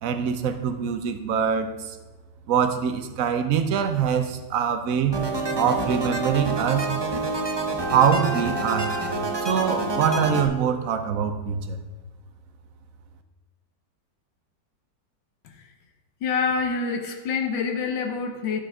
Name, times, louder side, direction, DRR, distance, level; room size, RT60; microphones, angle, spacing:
voice 1, 0.0-2.0 2.5-5.2 5.6-6.9 7.9-8.9 9.4-11.8, right 7 dB, 60° right, 8 dB, 1.0 m, -24 dB
sound 1, 5.1-10.4, right 3 dB, 30° right, 0.5 m, -27 dB
voice 2, 16.2-18.6, left 5 dB, 75° left, 5 dB, 1.6 m, -26 dB
11.5 x 5.8 x 4.8 m, 1.2 s
omnidirectional pair, 2.0 m